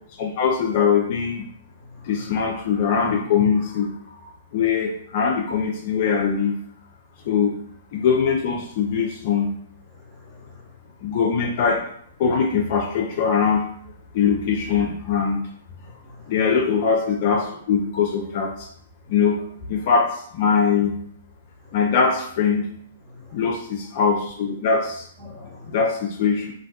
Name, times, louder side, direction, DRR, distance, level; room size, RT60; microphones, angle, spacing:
voice 1, 0.2-1.5 2.0-3.9 4.5-6.6 7.3-7.6 7.9-9.5 11.0-11.8 12.2-13.6 14.1-15.4 16.3-18.7 19.1-19.4 19.7-21.0 21.7-22.6 23.3-25.1 25.7-26.5, left 6 dB, 45° left, 1 dB, 0.3 m, -21 dB
voice 2, 10.1-10.6 15.8-16.3 23.1-23.4 25.2-25.8, left 3 dB, 15° right, -6 dB, 0.7 m, -44 dB
2.4 x 2.2 x 2.6 m, 0.65 s
figure-of-eight pair, 110°, 0 cm